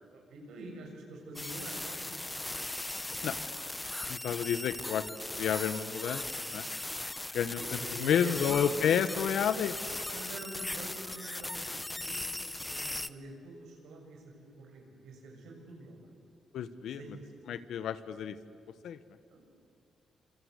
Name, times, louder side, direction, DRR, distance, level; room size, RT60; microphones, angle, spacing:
voice 1, 0.1-2.1 4.3-4.4 7.4-9.1 10.1-16.1 16.9-17.3 19.3-19.4, right 2 dB, 90° right, 2 dB, 6.7 m, -46 dB
sound 1, 1.4-13.1, left 2 dB, 10° left, 0.7 m, -38 dB
voice 2, 4.1-5.1 5.3-6.2 6.5-6.7 7.3-7.6 8.0-9.7 16.5-17.0 17.5-18.4 18.8-19.0, left 8 dB, 80° left, 13 dB, 1.1 m, -30 dB
26.5 x 26.0 x 8.3 m, 2.3 s
cardioid pair, 125°, 0 cm